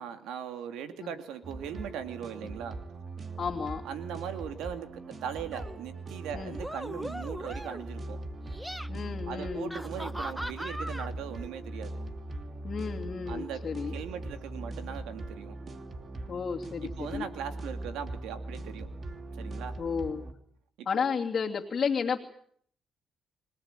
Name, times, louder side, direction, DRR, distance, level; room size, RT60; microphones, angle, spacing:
voice 1, 0.0-2.8 3.8-8.2 9.2-12.0 13.3-13.6 13.9-15.6 16.8-18.9 19.3-19.8 20.8-21.0, right 8 dB, 90° right, 8 dB, 2.6 m, -39 dB
sound 1, 1.4-20.3, right 2 dB, 40° right, 3.0 m, -40 dB
voice 2, 3.4-3.8 6.3-6.6 8.9-9.8 12.6-13.9 16.3-17.3 19.8-20.2 20.9-22.2, left 6 dB, 45° left, -2 dB, 2.7 m, -32 dB
sound 2, 5.5-5.8 6.5-7.9 8.4-8.9 9.7-11.1, equal, 5° right, 1.2 m, -39 dB
26.0 x 18.5 x 9.1 m, 0.64 s
cardioid pair, 90°, 0 cm